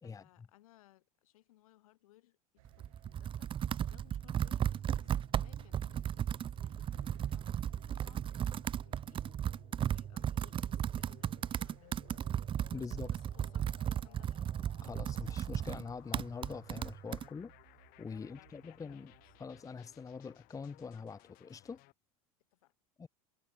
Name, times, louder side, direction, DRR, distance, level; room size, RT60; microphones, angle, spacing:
voice 1, 0.0-3.5 3.9-9.2 9.8-12.3 12.7-14.7 18.1-19.3 22.5-22.7, left 16 dB, 70° left, 5.7 m, -65 dB
Computer keyboard, 2.6-17.3, right 9 dB, 30° right, 0.7 m, -35 dB
sound 1, 2.6-19.7, right 19 dB, 65° right, 7.8 m, -65 dB
sound 2, 3.6-21.9, left 22 dB, 50° left, 1.8 m, -63 dB
voice 2, 12.7-13.1 14.8-17.5 18.0-19.1 19.4-21.8 23.0-23.1, left 5 dB, 20° left, 1.2 m, -44 dB
hypercardioid pair, 85°, 19 cm